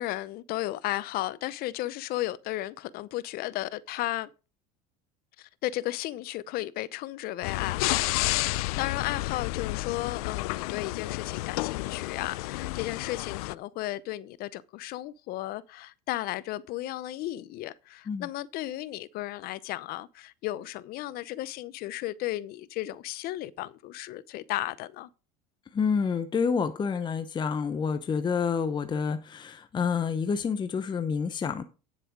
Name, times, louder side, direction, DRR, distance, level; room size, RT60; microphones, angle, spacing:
voice 1, 0.0-4.3 5.4-25.1, left 16 dB, 55° left, 0.7 m, -34 dB
sound 1, 7.4-13.5, left 20 dB, 85° left, 0.4 m, -31 dB
voice 2, 25.7-31.6, left 6 dB, 25° left, 0.8 m, -28 dB
9.5 x 7.5 x 4.7 m
supercardioid pair, 115°, 19 cm